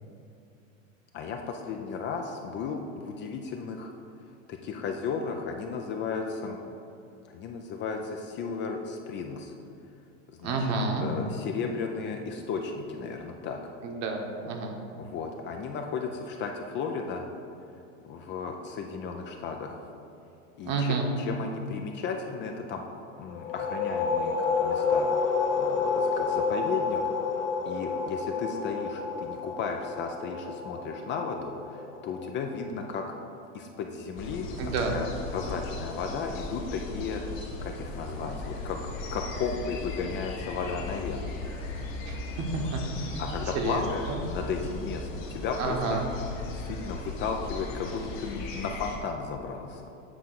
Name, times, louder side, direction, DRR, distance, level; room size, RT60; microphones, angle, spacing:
voice 1, 1.1-3.9 4.5-6.6 7.3-9.5 10.3-10.6 11.0-13.6 15.0-17.2 18.0-19.8 20.6-22.9 23.2-25.1 25.6-27.0 27.7-33.0 33.5-35.1 35.3-37.2 37.6-38.8 39.1-41.3 42.6-42.7 43.2-46.0 46.5-49.8, left 5 dB, 30° left, 3 dB, 0.4 m, -34 dB
voice 2, 10.4-11.1 13.8-14.7 20.6-21.1 34.6-34.9 42.1-43.2 43.5-43.8 44.1-44.2 45.6-46.0, right 4 dB, 45° right, 2 dB, 1.1 m, -30 dB
sound 1, 23.3-32.7, left 5 dB, 85° left, 0.8 m, -29 dB
sound 2, 34.2-49.0, left 2 dB, 65° left, 1.6 m, -37 dB
7.9 x 3.6 x 5.9 m, 2.7 s
hypercardioid pair, 110°, 40 cm